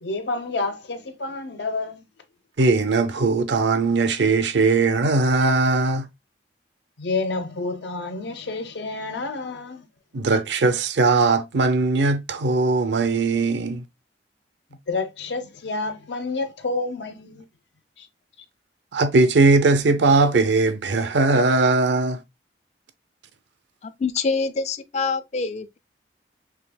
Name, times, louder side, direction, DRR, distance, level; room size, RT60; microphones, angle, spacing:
voice 1, 0.0-2.0 7.0-9.9 14.9-17.4 18.0-18.1, left 3 dB, 75° left, 0.7 m, -29 dB
voice 2, 2.6-6.1 10.1-13.8 18.9-22.2, right 3 dB, 80° right, 0.6 m, -19 dB
voice 3, 24.0-25.8, left 4 dB, 40° left, 0.4 m, -25 dB
5.0 x 3.4 x 2.2 m
head